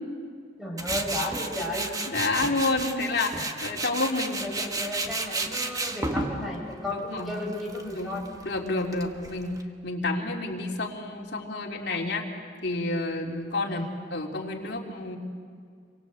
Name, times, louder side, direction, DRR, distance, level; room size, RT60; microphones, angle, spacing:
voice 1, 0.6-1.9 4.3-8.2 13.7-13.9, left 1 dB, ahead, -1 dB, 6.2 m, -34 dB
Tools, 0.8-9.6, right 2 dB, 20° right, 1.3 m, -33 dB
voice 2, 2.1-4.5 6.9-7.3 7.9-9.5 9.8-12.2 12.6-15.2, left 2 dB, 60° left, 0 dB, 3.3 m, -29 dB
29.0 x 24.5 x 7.9 m, 2.2 s
head